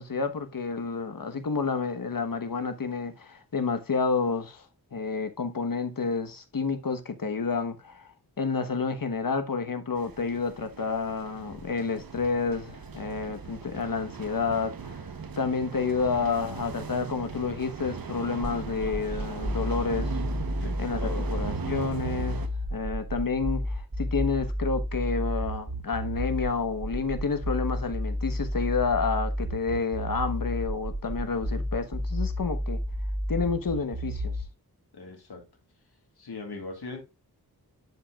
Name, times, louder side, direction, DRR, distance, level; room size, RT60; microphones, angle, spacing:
voice 1, 0.0-4.6 4.9-15.1 15.4-20.2 20.8-22.4 22.7-32.8 33.3-34.3, left 4 dB, 60° left, 1.2 m, -30 dB
sound 1, 10.0-22.5, right 5 dB, 65° right, 0.9 m, -39 dB
sound 2, 18.4-34.4, equal, 35° right, 2.2 m, -31 dB
voice 2, 20.6-21.4 34.9-35.4 36.2-37.0, left 3 dB, 85° left, 1.9 m, -39 dB
11.0 x 5.1 x 2.4 m
wide cardioid pair, 85°, 38 cm